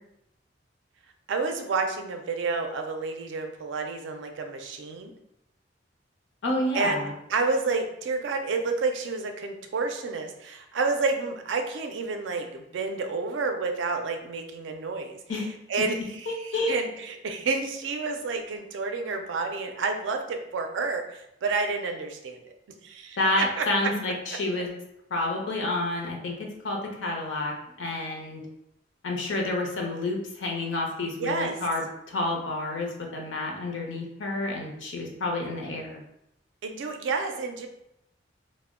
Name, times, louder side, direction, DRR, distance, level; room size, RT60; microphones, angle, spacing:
voice 1, 1.3-5.1 6.7-15.2 15.7-22.5 22.8-23.7 31.2-31.6 36.6-37.7, right 4 dB, 70° right, 5 dB, 0.4 m, -30 dB
voice 2, 6.4-7.1 15.3-15.5 15.8-16.7 23.2-24.7 25.1-28.4 29.0-36.0, left 2 dB, 75° left, 0 dB, 0.6 m, -29 dB
2.1 x 2.0 x 3.5 m, 0.81 s
head